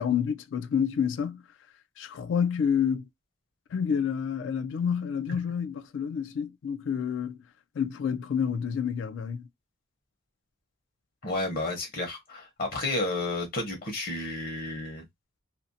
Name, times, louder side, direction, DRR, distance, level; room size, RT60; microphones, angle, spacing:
voice 1, 0.0-1.4 2.0-3.0 3.7-7.4 7.8-9.5, left 7 dB, 75° left, 0.3 m, -28 dB
voice 2, 11.2-15.0, left 2 dB, 55° left, 0.8 m, -31 dB
2.5 x 2.0 x 2.6 m
head